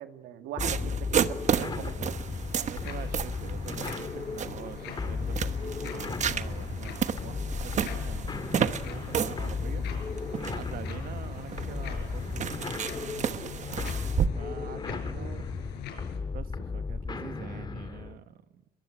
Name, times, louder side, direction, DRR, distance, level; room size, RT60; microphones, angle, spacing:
voice 1, 0.0-2.1 15.1-15.4, right 11 dB, 85° right, 2.0 m, -42 dB
sound 1, 0.6-18.2, left 4 dB, 25° left, 2.1 m, -35 dB
sound 2, 0.6-14.3, right 8 dB, 45° right, 1.2 m, -33 dB
voice 2, 1.5-9.8 10.5-13.9 14.3-15.4 16.3-18.6, right 10 dB, 60° right, 1.5 m, -45 dB
sound 3, 2.3-16.2, left 9 dB, 85° left, 5.5 m, -43 dB
23.0 x 22.5 x 10.0 m
cardioid pair, 110°, 17 cm